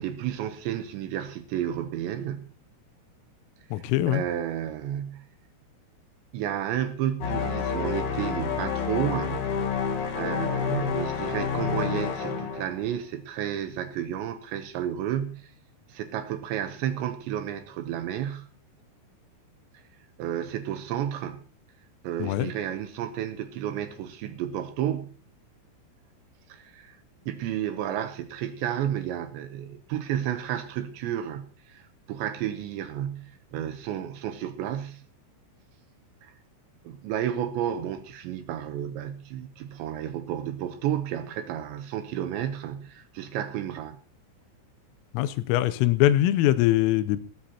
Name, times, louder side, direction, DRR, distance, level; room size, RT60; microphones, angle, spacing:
voice 1, 0.0-2.5 3.7-5.3 6.3-9.5 10.2-15.5 15.9-18.5 20.2-21.4 22.0-25.2 26.5-27.0 27.3-35.1 36.2-36.3 36.8-44.0, right 10 dB, 75° right, 2.9 m, -32 dB
voice 2, 3.7-4.2 22.2-22.5 45.1-47.2, left 14 dB, 85° left, 3.4 m, -22 dB
sound 1, 7.2-13.0, left 6 dB, 60° left, 2.0 m, -29 dB
19.0 x 14.5 x 2.9 m
omnidirectional pair, 5.8 m